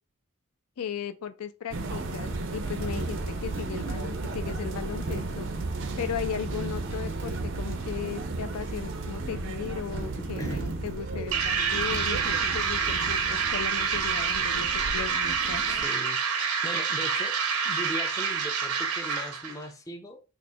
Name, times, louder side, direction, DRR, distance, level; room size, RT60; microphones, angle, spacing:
voice 1, 0.8-5.5 6.0-15.6, left 7 dB, 85° left, 0.4 m, -36 dB
sound 1, 1.7-15.9, right 3 dB, 55° right, 0.4 m, -34 dB
sound 2, 11.3-19.6, right 6 dB, 85° right, 0.7 m, -27 dB
voice 2, 15.6-17.4 17.6-20.2, left 1 dB, 15° left, 0.3 m, -39 dB
2.8 x 2.4 x 4.2 m
head